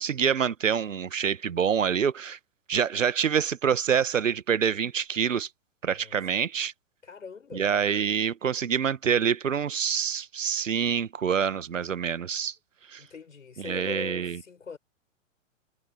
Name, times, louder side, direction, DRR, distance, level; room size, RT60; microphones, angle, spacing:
voice 1, 0.0-2.4 2.7-5.5 5.8-6.7 7.5-12.5 12.9-13.0 13.6-14.4, right 7 dB, 75° right, 1.4 m, -26 dB
voice 2, 5.9-6.2 7.0-7.7 13.0-14.8, left 5 dB, 75° left, 6.9 m, -41 dB
figure-of-eight pair, 110°, 39 cm